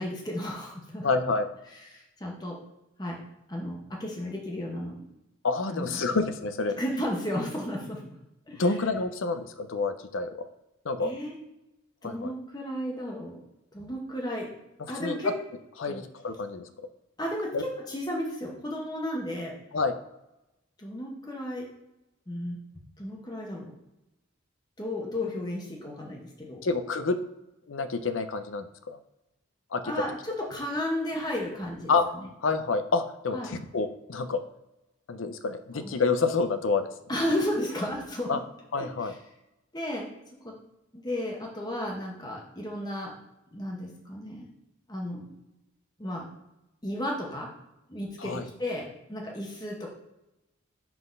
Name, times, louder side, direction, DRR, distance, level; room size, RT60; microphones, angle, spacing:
voice 1, 0.0-1.1 1.7-2.6 3.0-3.2 3.5-5.0 5.7-6.1 6.8-8.0 8.5-8.7 11.0-11.3 12.0-13.4 13.7-14.5 14.9-15.3 15.9-16.0 17.2-19.5 20.8-21.6 22.3-22.6 23.0-23.7 24.8-26.6 29.8-32.3 33.3-33.5 35.7-36.0 37.1-38.3 38.8-39.1 39.7-40.1 40.4-40.5 40.9-43.1 43.5-44.5 44.9-45.4 46.0-46.3 46.8-47.5 47.9-49.9, left 1 dB, 20° left, -1 dB, 1.0 m, -33 dB
voice 2, 1.0-1.5 5.4-6.8 8.5-10.4 10.8-11.1 12.0-12.3 15.0-15.2 15.8-16.6 17.5-17.6 19.7-19.9 26.6-27.2 27.7-29.0 29.7-29.9 31.9-32.0 32.4-34.4 35.1-36.9 38.3-38.4 38.7-39.1 48.2-48.4, left 4 dB, 70° left, 10 dB, 0.6 m, -28 dB
5.9 x 3.9 x 5.2 m, 0.94 s
head